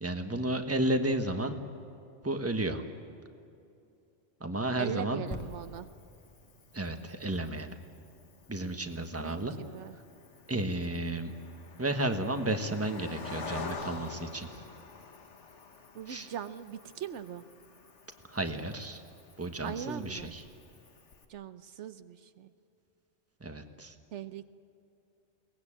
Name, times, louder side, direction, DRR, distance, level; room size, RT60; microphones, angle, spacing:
voice 1, 0.0-1.6 2.2-2.8 4.4-5.2 6.7-7.7 8.5-9.5 10.5-11.3 11.8-14.6 16.1-16.3 18.3-19.0 19.4-20.4 23.4-23.9, right 1 dB, 10° right, 6 dB, 1.2 m, -32 dB
voice 2, 4.8-5.9 9.2-10.0 15.9-17.4 19.6-20.3 21.3-22.5 24.1-24.4, right 9 dB, 75° right, 12 dB, 1.0 m, -40 dB
Cricket, 5.3-21.3, left 4 dB, 70° left, 1.8 m, -48 dB
sound 1, 5.3-8.9 9.5-9.6, left 1 dB, 15° left, 1.5 m, -47 dB
22.5 x 18.5 x 8.7 m, 2.7 s
omnidirectional pair, 1.2 m